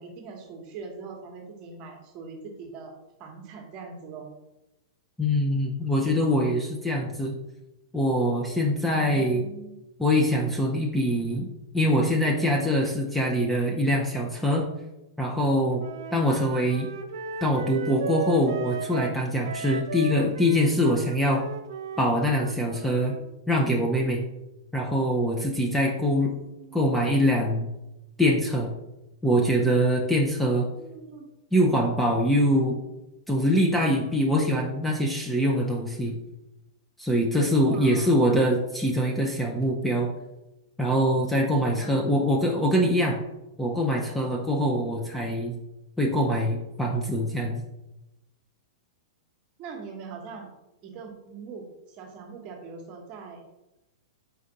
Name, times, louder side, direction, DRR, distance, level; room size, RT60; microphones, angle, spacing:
voice 1, 0.0-4.3 8.9-9.8 26.3-27.0 30.6-31.3 37.7-38.2 41.8-41.9 49.6-50.5 50.8-53.4, right 5 dB, 40° right, 2 dB, 1.0 m, -42 dB
voice 2, 5.2-7.3 7.9-9.4 10.0-11.5 11.7-14.7 15.2-15.8 16.1-16.9 17.4-21.5 22.0-23.1 23.5-24.2 24.7-26.3 26.7-27.7 28.2-28.7 29.2-30.7 31.5-32.8 33.3-36.1 37.0-40.1 40.8-43.2 43.6-45.5 46.0-47.6, equal, 5° left, -1 dB, 0.5 m, -24 dB
Wind instrument woodwind instrument, 15.8-23.2, right 5 dB, 75° right, 0.4 m, -36 dB
4.4 x 2.5 x 3.9 m, 0.95 s
hypercardioid pair, 120°, 3 cm